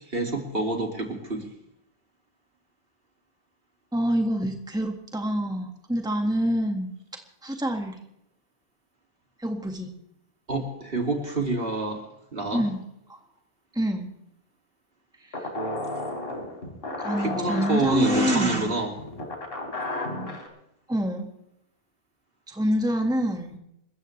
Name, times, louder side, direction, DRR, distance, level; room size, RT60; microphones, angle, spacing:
voice 1, 0.1-1.5 10.5-12.0 12.3-12.6 17.2-18.9, right 2 dB, 55° right, 2 dB, 2.9 m, -27 dB
voice 2, 3.9-6.9 7.4-8.0 9.4-9.9 12.5-12.8 13.7-14.1 15.2-15.5 17.0-18.7 20.9-21.3 22.5-23.6, equal, 5° right, 3 dB, 1.8 m, -26 dB
sound 1, 15.3-20.5, left 1 dB, 55° left, 3.6 m, -33 dB
27.5 x 14.5 x 3.3 m, 0.80 s
omnidirectional pair, 1.2 m